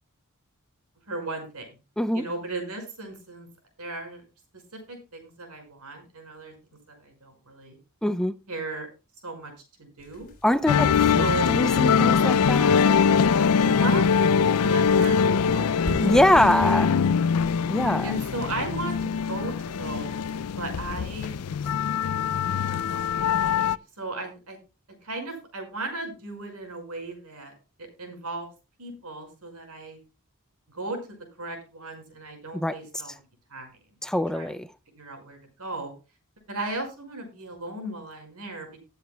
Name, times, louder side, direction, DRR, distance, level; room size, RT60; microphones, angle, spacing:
voice 1, 1.1-1.7 2.1-3.5 3.8-4.2 4.7-6.5 7.0-7.8 8.5-8.9 9.2-9.5 9.8-10.3 10.8-11.5 13.5-15.9 18.0-20.2 20.6-21.4 23.4-24.6 25.0-27.5 28.0-28.5 28.8-30.0 30.7-33.1 33.5-33.7 34.3-34.6 35.0-35.9 36.5-38.7, right 2 dB, 90° right, 5.5 m, -36 dB
voice 2, 8.0-8.4 10.4-12.9 16.0-16.9 17.7-18.1 32.5-32.8 34.0-34.7, left 1 dB, 5° left, 0.4 m, -24 dB
sound 1, 10.0-20.8, left 1 dB, 40° left, 4.0 m, -43 dB
sound 2, 10.7-23.8, left 6 dB, 80° left, 0.4 m, -23 dB
19.5 x 8.1 x 2.3 m
head